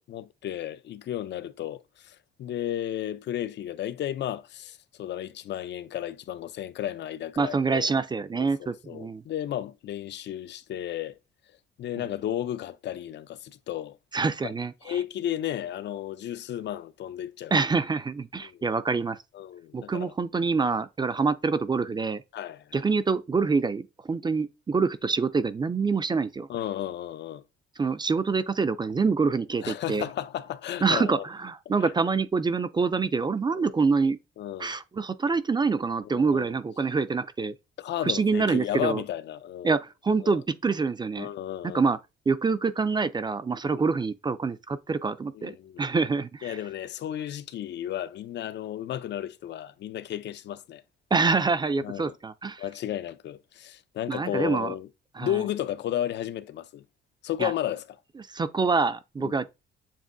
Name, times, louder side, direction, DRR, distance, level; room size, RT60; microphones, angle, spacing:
voice 1, 0.0-7.9 8.3-11.2 11.8-14.0 14.4-14.5 14.8-17.5 18.4-18.6 19.3-20.1 22.3-22.8 26.5-27.4 29.6-31.3 31.8-31.9 33.5-33.7 34.4-34.7 36.0-36.5 37.8-39.8 40.2-40.4 41.2-41.8 45.3-45.9 46.4-50.8 51.8-52.2 52.6-54.9 55.2-56.8 57.2-58.0 59.2-59.4, left 11 dB, 60° left, 0.5 m, -33 dB
voice 2, 7.4-9.2 14.1-15.0 17.5-19.2 19.7-22.2 22.7-26.5 27.8-30.1 30.8-34.2 34.6-37.5 38.0-39.0 39.6-41.3 41.7-42.0 42.3-46.6 51.1-52.6 54.1-54.7 55.2-55.3 57.4-57.5 58.3-59.5, right 4 dB, 20° right, 0.4 m, -26 dB
7.3 x 2.6 x 2.6 m
cardioid pair, 90°, 20 cm